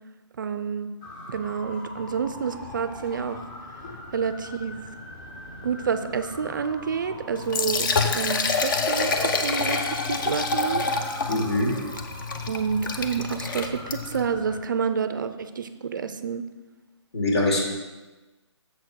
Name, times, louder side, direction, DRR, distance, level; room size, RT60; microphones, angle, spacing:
voice 1, 0.4-0.9 1.3-3.4 4.1-4.8 5.6-10.8 12.5-16.4, right 6 dB, 40° right, 11 dB, 0.4 m, -29 dB
sound 1, 1.0-14.6, left 2 dB, 25° left, 1.0 m, -42 dB
Liquid, 7.4-14.2, left 4 dB, 40° left, 0.7 m, -27 dB
voice 2, 11.3-11.7 17.1-17.6, left 1 dB, 60° left, -1 dB, 2.4 m, -23 dB
7.0 x 4.4 x 6.1 m, 1.1 s
hypercardioid pair, 155°, 16 cm